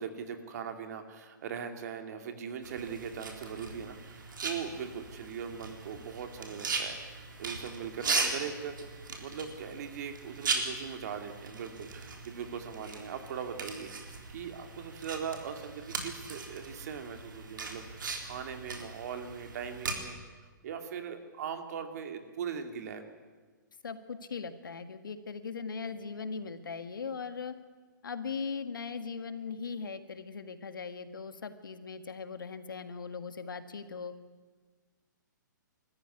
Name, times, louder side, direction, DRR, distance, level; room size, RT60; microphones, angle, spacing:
voice 1, 0.0-8.7 9.2-20.2 20.6-23.1, right 7 dB, 55° right, 6 dB, 2.6 m, -40 dB
sound 1, 2.6-19.9, right 4 dB, 80° right, 3.8 m, -38 dB
voice 2, 23.8-27.5 28.0-34.1, left 5 dB, 90° left, 10 dB, 1.8 m, -39 dB
23.0 x 14.0 x 9.8 m, 1.4 s
hypercardioid pair, 145°, 11 cm